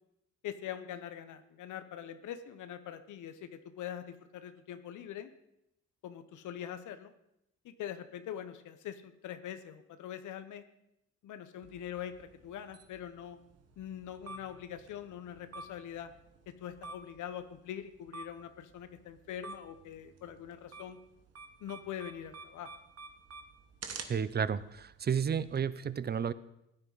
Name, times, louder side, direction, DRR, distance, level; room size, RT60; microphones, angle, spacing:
voice 1, 0.4-5.3 6.0-7.1 7.6-10.6 11.2-13.4 13.8-16.1 16.5-21.0 21.6-22.7, left 10 dB, 80° left, 11 dB, 1.0 m, -43 dB
sound 1, 11.6-25.6, right 4 dB, 55° right, 1.4 m, -51 dB
voice 2, 24.1-26.3, right 7 dB, 35° right, 16 dB, 0.6 m, -32 dB
16.0 x 9.7 x 4.0 m, 0.82 s
cardioid pair, 90°, 30 cm